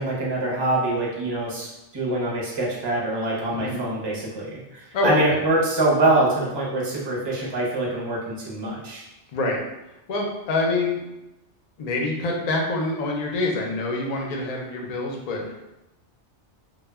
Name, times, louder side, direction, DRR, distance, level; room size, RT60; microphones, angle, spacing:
voice 1, 0.0-9.0, right 2 dB, 30° right, -4 dB, 0.4 m, -24 dB
voice 2, 4.9-5.4 9.3-9.6 10.1-11.0 11.8-15.5, left 2 dB, 55° left, 0 dB, 0.4 m, -25 dB
2.1 x 2.1 x 3.3 m, 0.94 s
omnidirectional pair, 1.2 m